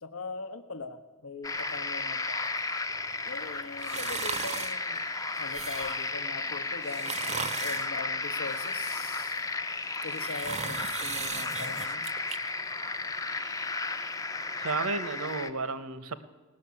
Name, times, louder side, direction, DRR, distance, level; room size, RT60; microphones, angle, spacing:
voice 1, 0.0-2.5 3.2-5.0 5.4-9.4 10.0-12.1, left 4 dB, 70° left, 10 dB, 0.9 m, -41 dB
sound 1, 1.4-15.5, left 3 dB, 15° left, 0.5 m, -34 dB
sound 2, 3.8-4.8 5.4-6.1 6.8-7.9 8.5-9.4 9.9-12.4 12.8-12.9, right 7 dB, 30° right, 0.5 m, -38 dB
voice 2, 14.6-16.2, right 3 dB, 85° right, 13 dB, 0.9 m, -33 dB
17.5 x 6.5 x 9.6 m, 1.2 s
head